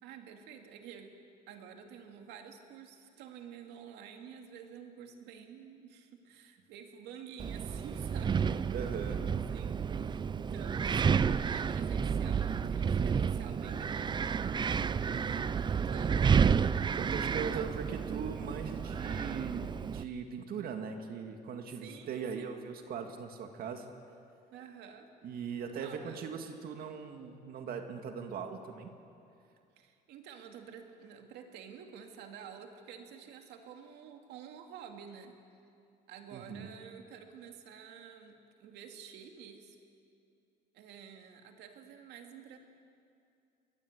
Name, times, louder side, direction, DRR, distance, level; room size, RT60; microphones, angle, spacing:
voice 1, 0.0-1.1 1.5-15.4 15.6-16.8 21.8-22.6 24.5-25.1 25.7-26.2 29.8-35.3 36.1-39.8 40.7-42.6, right 7 dB, 85° right, 4 dB, 2.4 m, -50 dB
Wind, 7.4-20.0, right 6 dB, 25° right, 0.5 m, -31 dB
voice 2, 8.7-9.2 15.1-15.5 15.9-16.0 17.0-23.9 25.2-28.9 36.3-36.7, right 6 dB, 65° right, 5 dB, 2.0 m, -40 dB
22.5 x 19.0 x 8.0 m, 2.5 s
cardioid pair, 110°, 17 cm